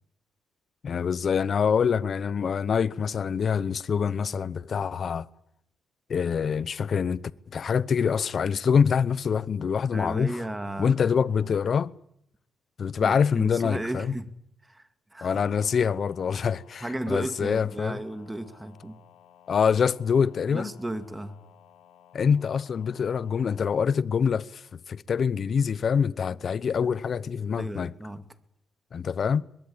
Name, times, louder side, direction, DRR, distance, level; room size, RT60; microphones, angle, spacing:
voice 1, 0.8-5.3 6.1-10.3 10.8-11.9 12.8-14.1 15.2-18.0 19.5-20.7 22.1-27.9 28.9-29.4, left 6 dB, 50° left, 0.9 m, -25 dB
voice 2, 9.9-11.0 13.0-14.3 14.6-15.3 16.8-19.0 20.5-21.4 27.6-28.2, right 1 dB, 10° right, 2.4 m, -34 dB
sound 1, 11.3-11.6 15.2-23.8, left 9 dB, 85° left, 5.0 m, -56 dB
23.5 x 21.5 x 8.8 m
cardioid pair, 90°, 0 cm